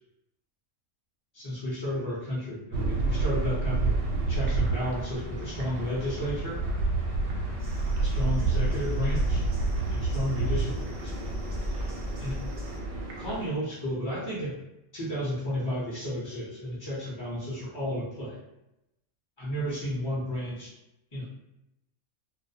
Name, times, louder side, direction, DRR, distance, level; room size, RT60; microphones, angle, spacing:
voice 1, 1.3-6.6 8.0-9.5 9.9-11.1 12.2-12.4 13.2-14.6 14.9-18.4 19.4-20.7 21.1-21.3, equal, 30° left, -10 dB, 0.5 m, -32 dB
sound 1, 2.7-13.5, right 3 dB, 90° right, 1.0 m, -29 dB
sound 2, 3.6-13.2, equal, 65° left, 0.8 m, -38 dB
sound 3, 7.6-12.8, right 1 dB, 50° right, 0.5 m, -47 dB
2.3 x 2.1 x 2.6 m, 0.88 s
omnidirectional pair, 1.3 m